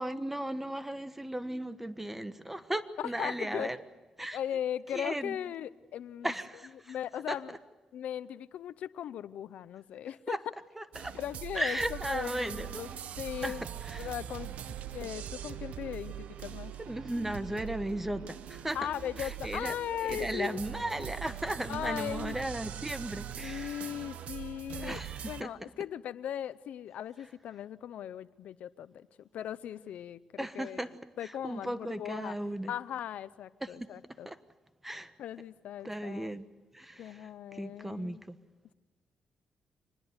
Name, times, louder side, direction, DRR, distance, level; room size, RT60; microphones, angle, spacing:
voice 1, 0.0-3.8 4.2-4.4 4.9-5.4 6.2-6.9 7.3-7.4 10.3-10.4 10.8-11.2 11.6-12.8 13.4-13.5 13.8-14.1 16.8-18.8 19.2-23.9 24.7-25.5 30.4-31.0 31.2-32.7 33.6-33.7 34.2-34.4 34.8-35.1 35.8-36.4 36.7-38.4, right 1 dB, 10° right, 11 dB, 1.3 m, -36 dB
voice 2, 3.2-3.7 4.3-6.3 6.9-7.6 7.9-10.4 11.1-13.6 14.0-14.5 14.9-16.7 18.7-20.6 21.7-22.4 23.4-29.1 29.3-30.8 31.2-32.3 32.7-34.3 35.2-36.3 37.0-38.2, left 10 dB, 80° left, 16 dB, 0.7 m, -38 dB
sound 1, 10.9-25.4, right 10 dB, 80° right, 1.0 m, -42 dB
25.0 x 20.0 x 8.1 m, 1.2 s
cardioid pair, 90°, 2 cm